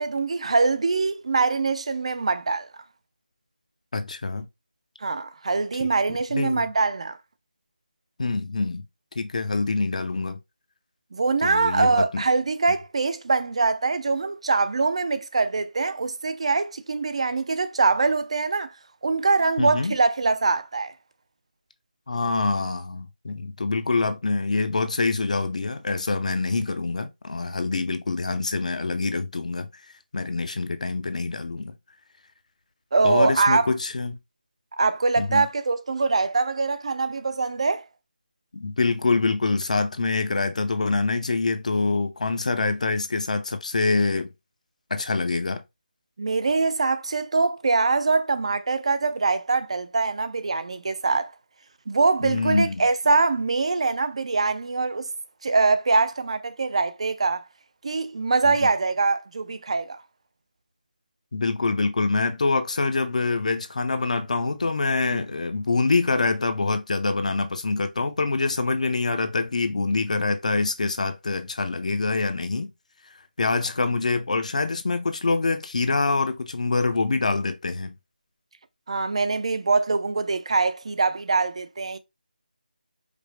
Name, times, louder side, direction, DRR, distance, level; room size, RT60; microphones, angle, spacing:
voice 1, 0.0-2.7 5.0-7.2 11.1-18.7 19.0-20.9 32.9-33.7 34.8-37.9 46.2-51.3 51.9-55.1 55.4-57.4 57.8-60.0 65.0-65.2 78.9-82.0, right 3 dB, 40° right, 0.3 m, -23 dB
voice 2, 3.9-4.5 6.3-6.7 8.2-8.8 9.2-10.4 11.4-12.2 19.6-19.9 22.1-29.7 30.1-31.7 33.0-34.2 35.2-35.4 38.5-44.3 44.9-45.6 52.2-52.7 61.3-72.7 73.4-77.9, left 3 dB, 50° left, 0.5 m, -25 dB
5.0 x 2.0 x 3.2 m
figure-of-eight pair, 170°, 5 cm